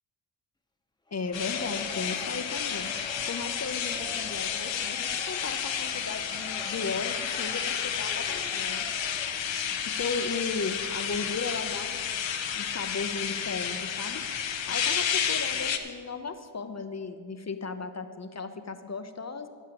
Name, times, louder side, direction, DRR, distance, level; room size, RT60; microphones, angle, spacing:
voice 1, 1.1-2.9 3.3-8.9 9.9-12.2 12.6-14.2 14.7-19.5, left 4 dB, 35° left, 8 dB, 0.7 m, -36 dB
Crowd, 1.1-9.6, left 1 dB, 10° left, 1.0 m, -45 dB
sound 1, 1.3-15.8, left 8 dB, 80° left, 0.9 m, -31 dB
13.5 x 5.5 x 7.7 m, 2.2 s
cardioid pair, 70°, 44 cm